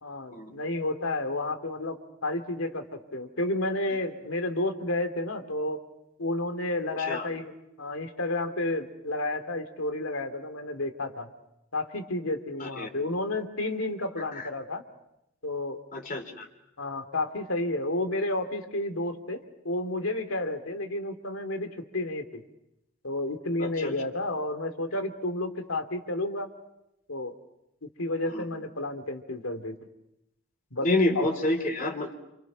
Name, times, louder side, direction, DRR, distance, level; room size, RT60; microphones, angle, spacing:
voice 1, 0.0-5.8 6.2-7.5 7.8-11.3 11.7-14.8 15.4-15.8 16.8-22.4 23.0-26.5 27.1-27.3 28.0-29.7 30.7-30.9 31.1-31.3, left 2 dB, 80° left, 7 dB, 2.6 m, -31 dB
voice 2, 15.9-16.5 23.6-23.9 28.3-28.4 30.8-32.1, left 2 dB, 40° left, 4 dB, 3.3 m, -28 dB
28.5 x 28.5 x 6.1 m, 0.86 s
head